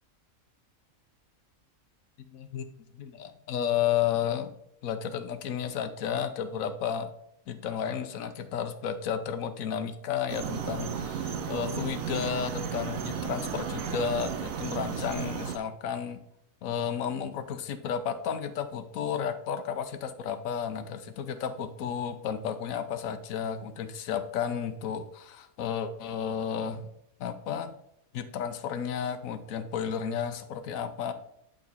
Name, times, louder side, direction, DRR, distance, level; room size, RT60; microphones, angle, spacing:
voice 1, 2.3-4.6 4.8-7.1 7.5-16.2 16.6-26.9 27.2-27.7 28.1-31.1, left 8 dB, 75° left, 10 dB, 1.1 m, -32 dB
sound 1, 10.3-15.6, right 7 dB, 75° right, 1.0 m, -34 dB
8.6 x 3.9 x 4.1 m, 0.76 s
omnidirectional pair, 1.5 m